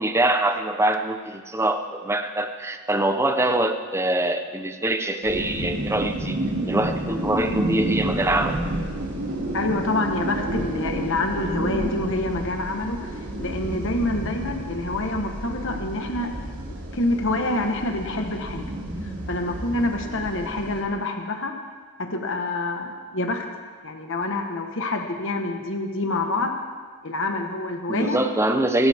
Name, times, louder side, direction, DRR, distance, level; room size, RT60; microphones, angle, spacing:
voice 1, 0.0-6.4 6.7-8.6 27.9-28.9, right 1 dB, 10° right, 6 dB, 0.8 m, -24 dB
sound 1, 5.2-20.8, right 1 dB, 85° right, 2.8 m, -30 dB
voice 2, 9.5-16.5 16.9-18.7 19.3-21.6 22.0-23.5 23.8-26.5 27.0-28.2, left 2 dB, 60° left, 4 dB, 1.4 m, -27 dB
25.0 x 12.5 x 3.6 m, 1.5 s
head